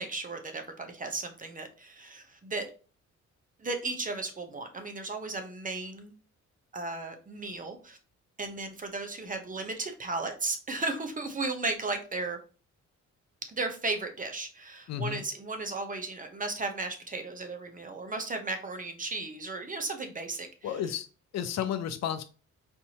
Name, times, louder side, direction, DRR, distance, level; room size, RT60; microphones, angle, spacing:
voice 1, 0.0-2.6 3.6-6.1 6.7-8.0 8.4-12.4 13.5-20.5, right 3 dB, 25° right, 6 dB, 0.8 m, -35 dB
voice 2, 14.9-15.2 20.6-21.1 21.3-22.2, left 9 dB, 60° left, 10 dB, 0.5 m, -32 dB
4.4 x 2.7 x 2.8 m, 0.36 s
cardioid pair, 90°, 30 cm